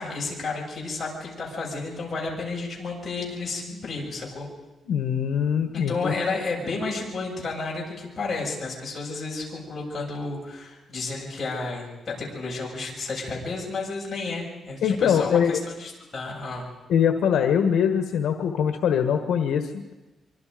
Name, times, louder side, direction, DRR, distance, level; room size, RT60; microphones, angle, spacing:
voice 1, 0.0-4.5 5.7-16.7, left 3 dB, 25° left, -4 dB, 7.5 m, -32 dB
voice 2, 4.9-6.1 14.8-15.6 16.9-19.9, left 8 dB, 80° left, 6 dB, 1.5 m, -23 dB
25.5 x 25.0 x 5.2 m, 1.1 s
wide cardioid pair, 160°, 0 cm